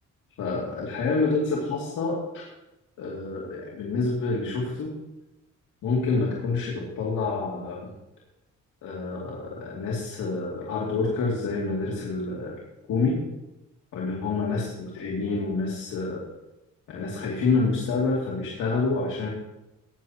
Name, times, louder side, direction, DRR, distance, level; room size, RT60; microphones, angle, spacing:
voice 1, 0.4-2.5 3.0-4.9 5.8-7.9 8.8-12.5 12.9-13.2 13.9-16.2 16.9-19.3, left 3 dB, 80° left, -4 dB, 2.6 m, -27 dB
18.0 x 10.0 x 2.9 m, 0.97 s
cardioid pair, 90°, 30 cm